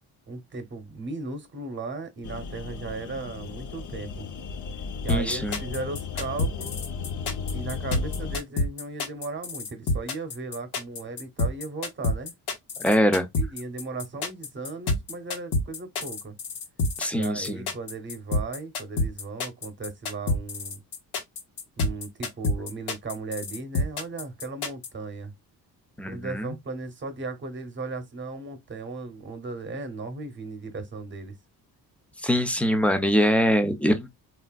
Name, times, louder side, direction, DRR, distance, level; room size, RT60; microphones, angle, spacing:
voice 1, 0.3-4.3 5.0-6.8 7.5-12.3 13.4-16.3 17.1-20.8 21.8-25.3 26.1-31.3, right 3 dB, 30° right, 0.9 m, -36 dB
sound 1, 2.2-8.4, left 5 dB, 50° left, 0.6 m, -35 dB
sound 2, 5.1-24.9, left 2 dB, 80° left, 1.1 m, -28 dB
voice 2, 5.1-5.6 12.8-13.3 17.0-17.7 26.0-26.5 32.2-34.1, equal, 5° left, 0.4 m, -23 dB
3.3 x 2.5 x 2.2 m
cardioid pair, 120°, 39 cm